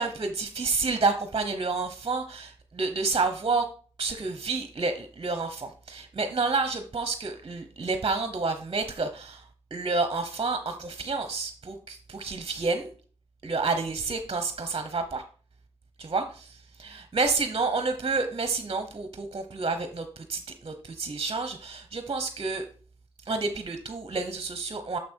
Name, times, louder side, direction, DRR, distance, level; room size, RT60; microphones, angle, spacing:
voice 1, 0.0-3.7 4.0-9.4 9.7-12.9 13.4-15.2 16.0-22.6 23.3-25.0, right 3 dB, 45° right, 8 dB, 1.0 m, -29 dB
6.7 x 6.0 x 4.5 m, 0.42 s
cardioid pair, 45°, 11 cm